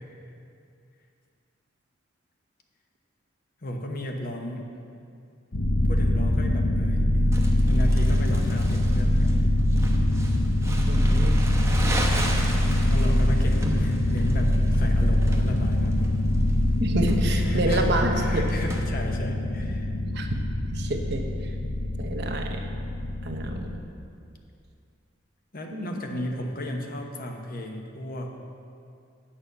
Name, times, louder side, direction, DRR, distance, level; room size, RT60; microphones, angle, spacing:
voice 1, 3.6-4.7 5.8-7.2 7.6-9.3 12.4-16.2 17.3-19.9 25.5-28.5, equal, 50° left, 2 dB, 1.0 m, -34 dB
sound 1, 5.5-23.8, left 1 dB, 85° left, 1.0 m, -23 dB
Crumpling crinkling, 7.3-18.8, right 1 dB, 15° right, 0.9 m, -37 dB
voice 2, 10.9-11.4 16.8-18.4 20.0-20.3 20.7-21.2 22.0-22.6 23.2-23.8 25.7-26.2, right 2 dB, 60° right, 3 dB, 0.9 m, -28 dB
8.8 x 5.4 x 7.8 m, 2.4 s
head